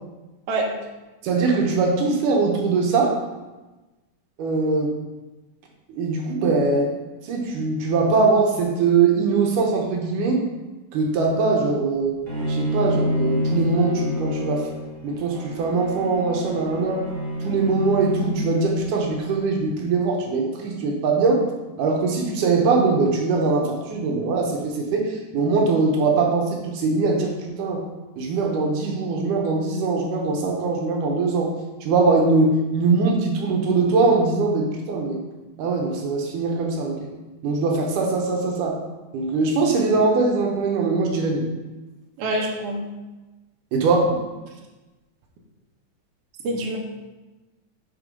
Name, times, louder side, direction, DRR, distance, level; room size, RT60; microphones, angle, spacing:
voice 1, 1.2-3.2 4.4-5.0 5.9-6.9 7.2-10.4 10.9-12.2 12.5-14.7 15.0-17.0 17.4-21.4 21.8-27.9 28.2-31.5 31.8-35.2 35.6-37.1 37.4-38.8 39.1-41.5 43.7-44.3, right 3 dB, 80° right, 0 dB, 2.4 m, -21 dB
Bowed string instrument, 12.3-19.3, left 1 dB, 25° right, 1.5 m, -28 dB
voice 2, 42.2-42.9 46.4-46.8, right 1 dB, 65° right, 0 dB, 1.6 m, -25 dB
6.6 x 3.7 x 5.2 m, 1.1 s
omnidirectional pair, 3.7 m